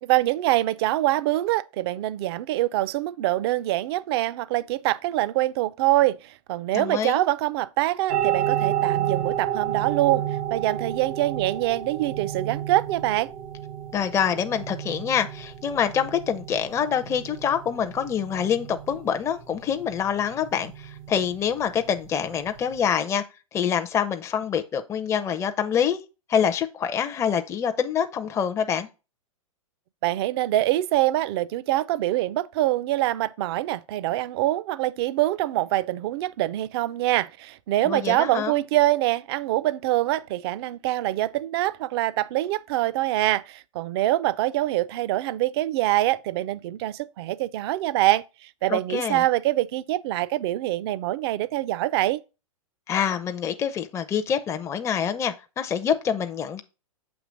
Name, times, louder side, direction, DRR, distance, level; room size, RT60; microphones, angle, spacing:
voice 1, 0.0-10.3 10.5-13.3 30.0-52.2, right 16 dB, 45° right, 0.4 m, -24 dB
voice 2, 6.7-7.2 13.9-23.2 23.5-26.0 26.3-28.9 37.8-38.6 48.7-49.2 52.9-56.6, left 8 dB, 15° left, 0.5 m, -26 dB
sound 1, 8.1-22.8, right 10 dB, 75° right, 1.0 m, -31 dB
7.0 x 2.9 x 5.1 m
hypercardioid pair, 110°, 18 cm